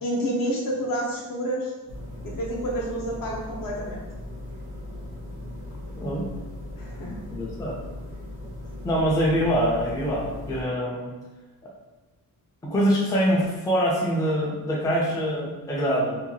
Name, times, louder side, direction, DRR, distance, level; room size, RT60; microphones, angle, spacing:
voice 1, 0.0-1.7 2.2-4.0 6.8-7.2, equal, 65° left, -2 dB, 0.7 m, -29 dB
sound 1, 1.9-10.6, left 1 dB, 85° right, 0.8 m, -38 dB
voice 2, 6.0-6.3 7.3-7.8 8.8-11.1 12.6-16.2, equal, 10° left, -3 dB, 0.3 m, -24 dB
2.8 x 2.2 x 2.7 m, 1.2 s
wide cardioid pair, 145°, 36 cm